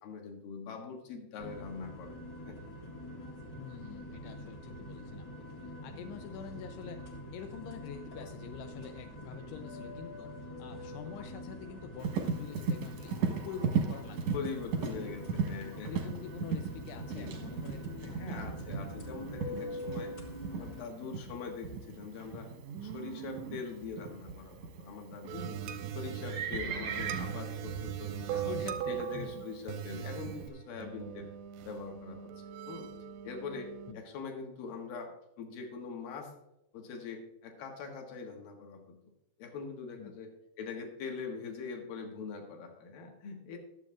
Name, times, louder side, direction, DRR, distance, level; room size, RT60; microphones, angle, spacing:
voice 1, 0.0-2.2 2.5-2.6 14.3-16.1 17.1-17.4 18.0-20.2 20.5-22.5 22.8-25.6 25.9-28.5 28.9-31.3 31.6-32.9 33.2-36.3 36.7-39.0 39.4-40.3 40.6-43.6, left 5 dB, 65° left, 3 dB, 3.1 m, -43 dB
sound 1, 1.4-20.8, left 1 dB, 40° left, 1.6 m, -45 dB
voice 2, 3.6-14.2 14.9-15.1 15.9-18.2 26.5-26.9 28.3-29.5 33.9-34.0 40.0-40.1, left 8 dB, 85° left, 6 dB, 2.8 m, -46 dB
Livestock farm animals working animals, 12.0-30.5, right 6 dB, 65° right, 1.7 m, -38 dB
sound 2, 25.3-33.9, right 9 dB, 85° right, 2.8 m, -40 dB
21.5 x 7.7 x 2.5 m, 0.86 s
omnidirectional pair, 4.7 m